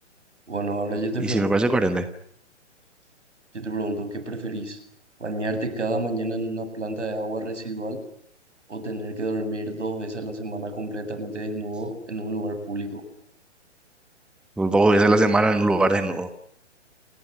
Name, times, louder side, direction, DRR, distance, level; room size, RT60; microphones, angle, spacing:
voice 1, 0.5-1.7 3.5-4.8 5.2-8.0 8.7-13.0, right 2 dB, 75° right, 9 dB, 7.9 m, -30 dB
voice 2, 1.2-2.0 14.6-16.3, right 2 dB, ahead, 10 dB, 1.3 m, -20 dB
29.0 x 20.5 x 9.8 m, 0.68 s
figure-of-eight pair, 130°, 36 cm